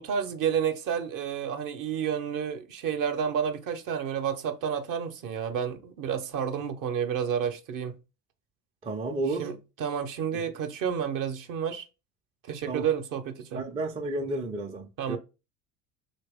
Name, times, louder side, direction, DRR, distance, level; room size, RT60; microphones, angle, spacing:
voice 1, 0.0-7.9 9.4-11.8 12.5-13.6 15.0-15.2, right 8 dB, 45° right, 0.7 m, -30 dB
voice 2, 8.8-9.5 12.7-12.9 13.5-15.2, right 2 dB, 15° right, 0.4 m, -32 dB
2.9 x 2.8 x 3.4 m
hypercardioid pair, 70°, 45 cm